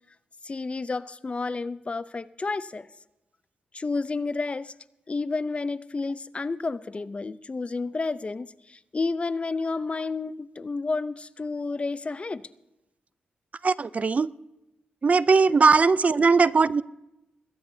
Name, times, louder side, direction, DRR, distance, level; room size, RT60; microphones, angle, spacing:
voice 1, 0.4-2.9 3.7-4.7 5.1-12.4 15.5-15.6, left 3 dB, 35° left, 16 dB, 0.5 m, -31 dB
voice 2, 13.6-14.3 15.0-16.8, right 4 dB, 45° right, 19 dB, 0.4 m, -19 dB
20.0 x 17.0 x 2.7 m, 0.92 s
supercardioid pair, 45°, 3 cm